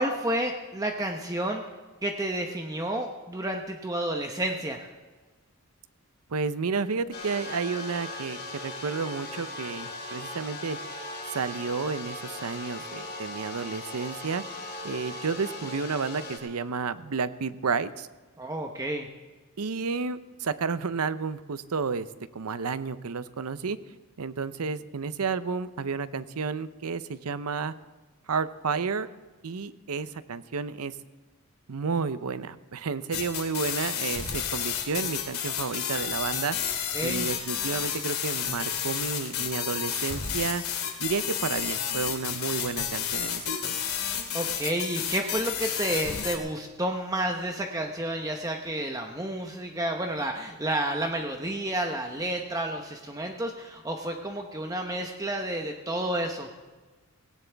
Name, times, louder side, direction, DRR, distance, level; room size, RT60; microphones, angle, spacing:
voice 1, 0.0-1.6 2.0-4.9 18.4-19.1 36.9-37.3 44.3-56.5, right 1 dB, 15° right, 3 dB, 0.9 m, -30 dB
voice 2, 6.3-10.8 11.3-14.4 14.8-18.1 19.6-22.1 22.3-23.8 24.2-27.7 28.3-29.1 29.4-30.9 31.7-36.6 37.0-40.6 41.0-43.8, right 5 dB, 80° right, 14 dB, 0.7 m, -31 dB
sound 1, 7.1-16.4, left 2 dB, 45° left, 3.3 m, -39 dB
sound 2, 33.1-46.4, left 8 dB, 75° left, 2.4 m, -31 dB
18.0 x 17.0 x 3.4 m, 1.3 s
head